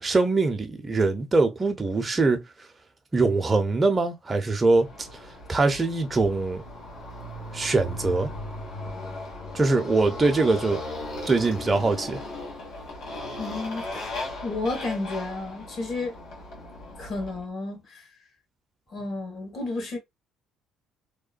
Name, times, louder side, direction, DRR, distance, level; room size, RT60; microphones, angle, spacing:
voice 1, 0.0-2.4 3.1-5.1 5.5-6.6 7.5-8.3 9.5-10.8 11.3-12.2, right 3 dB, 25° right, 0.7 m, -23 dB
Motorcycle, 4.7-17.4, left 2 dB, 75° left, 1.3 m, -37 dB
voice 2, 13.4-16.2 17.0-18.1 18.9-20.0, left 2 dB, 50° left, 1.4 m, -32 dB
2.9 x 2.2 x 2.4 m
supercardioid pair, 80°, 0 cm